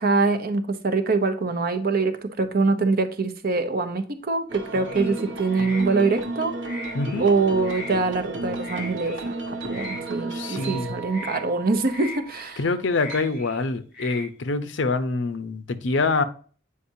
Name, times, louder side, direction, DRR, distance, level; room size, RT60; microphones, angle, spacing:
voice 1, 0.0-6.5 7.2-12.6, right 3 dB, 50° right, 0.8 m, -24 dB
sound 1, 4.5-13.3, right 2 dB, 80° right, 0.9 m, -34 dB
sound 2, 4.8-5.2 5.5-6.2 6.6-7.3 7.6-7.9 8.6-9.3 9.7-10.0 10.5-10.8 11.1-11.4 11.9-12.5 12.9-13.6 13.9-14.3, left 2 dB, 60° left, 3.6 m, -39 dB
voice 2, 6.9-7.3 10.3-11.0 12.6-16.2, left 3 dB, 75° left, 0.6 m, -25 dB
8.4 x 5.0 x 2.7 m
head